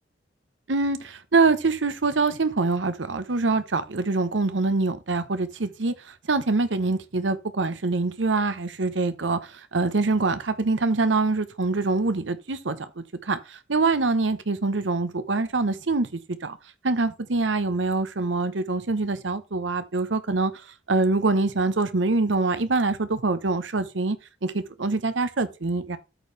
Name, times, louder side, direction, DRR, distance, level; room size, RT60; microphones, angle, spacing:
voice 1, 0.7-16.6 16.8-24.2 24.4-26.0, right 3 dB, 85° right, 0.9 m, -25 dB
13.0 x 4.6 x 3.3 m
head